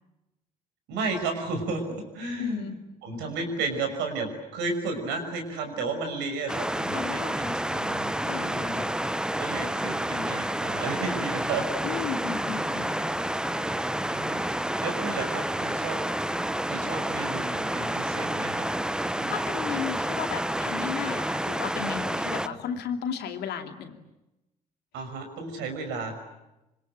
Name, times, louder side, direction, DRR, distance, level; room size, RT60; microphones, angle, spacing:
voice 1, 0.9-2.7 3.0-8.8 9.4-11.7 14.1-14.4 14.8-16.0 16.6-18.6 19.1-19.3 22.5-22.6 24.9-26.2, right 3 dB, 60° right, 5 dB, 6.1 m, -33 dB
voice 2, 2.4-2.8 6.9-7.4 8.3-9.0 11.8-13.1 19.3-24.0, left 8 dB, 55° left, 6 dB, 2.6 m, -34 dB
sound 1, 6.5-22.5, right 1 dB, 5° right, 0.9 m, -29 dB
26.0 x 25.5 x 8.9 m, 0.96 s
figure-of-eight pair, 50°, 20 cm